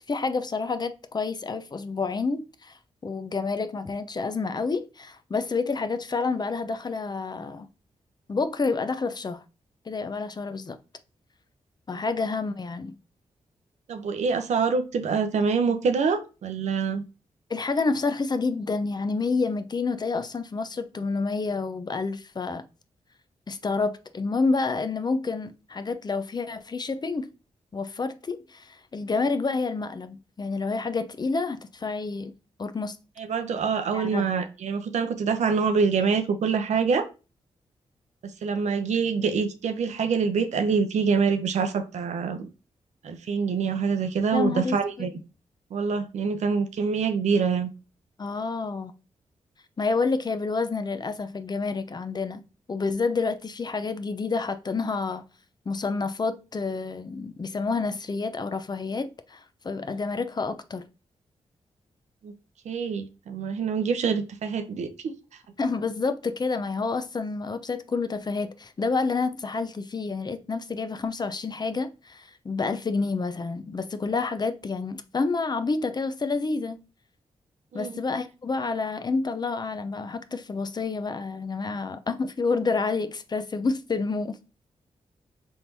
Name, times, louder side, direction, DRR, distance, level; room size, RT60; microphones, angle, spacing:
voice 1, 0.1-7.7 8.3-9.4 9.9-10.8 11.9-13.0 17.5-22.6 23.5-27.3 27.7-32.3 32.6-33.0 33.9-34.3 44.3-45.1 48.2-48.9 49.8-52.4 52.7-55.2 55.7-60.9 65.6-76.8 77.7-84.4, left 4 dB, 35° left, 0.5 m, -29 dB
voice 2, 13.9-17.0 33.2-37.1 38.2-42.5 43.0-45.1 45.7-47.7 62.2-62.3 62.7-65.1 77.7-78.0, right 5 dB, 80° right, 0.6 m, -25 dB
4.4 x 3.6 x 2.6 m
cardioid pair, 70°, 12 cm